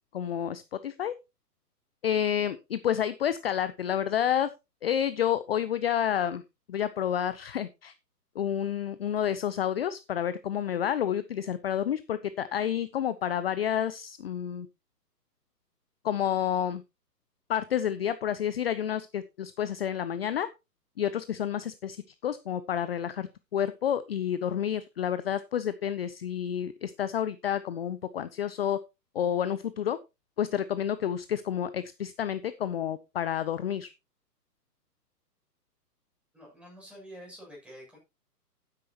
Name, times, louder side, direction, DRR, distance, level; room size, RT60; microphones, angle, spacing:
voice 1, 0.1-1.1 2.0-4.5 4.8-6.4 6.7-7.9 8.4-14.7 16.0-16.8 17.5-20.5 21.0-28.8 29.1-30.0 30.4-33.9, left 9 dB, 40° left, 14 dB, 0.7 m, -29 dB
voice 2, 36.3-38.0, equal, ahead, -3 dB, 7.2 m, -48 dB
12.5 x 9.7 x 2.9 m, 0.25 s
figure-of-eight pair, 125°, 49 cm